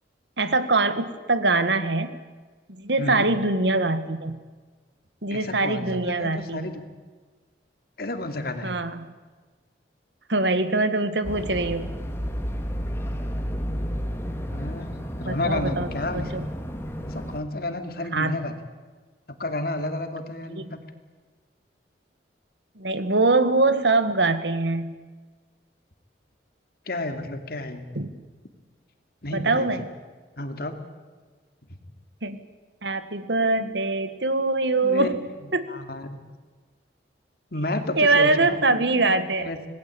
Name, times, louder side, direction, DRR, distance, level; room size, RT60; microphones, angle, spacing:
voice 1, 0.4-2.2 2.7-4.4 5.2-6.7 8.6-9.1 10.3-11.9 15.2-15.9 16.1-16.4 18.1-18.4 22.8-24.9 27.9-28.1 29.3-29.9 32.2-32.4 32.8-35.2 35.5-35.6 38.0-39.5, right 3 dB, 80° right, 12 dB, 1.8 m, -23 dB
voice 2, 3.0-3.3 5.3-6.9 8.0-8.8 14.5-16.3 17.0-18.5 19.3-20.8 26.9-27.8 29.2-29.7 30.4-30.8 34.8-35.2 35.7-36.2 37.5-38.6 39.4-39.7, left 2 dB, 60° left, 7 dB, 2.6 m, -31 dB
sound 1, 11.2-17.4, equal, 15° left, 2.2 m, -31 dB
26.5 x 19.5 x 8.6 m, 1.4 s
head